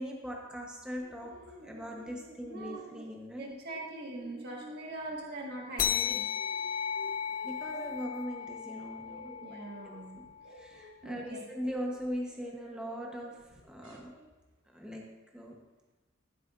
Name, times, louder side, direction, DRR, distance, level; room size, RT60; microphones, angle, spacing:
voice 1, 0.0-3.5 7.4-9.6 9.8-14.1 14.7-15.1 15.3-15.6, equal, 5° right, -1 dB, 0.9 m, -40 dB
sound 1, 0.9-5.3 5.6-8.1 8.3-14.3, right 1 dB, 85° right, 2.0 m, -53 dB
voice 2, 2.5-2.9 3.4-6.2 9.4-10.2 11.0-11.4, right 2 dB, 55° right, -2 dB, 1.6 m, -42 dB
sound 2, 5.8-10.7, left 8 dB, 45° left, 0.7 m, -35 dB
14.0 x 8.2 x 2.5 m, 1.2 s
head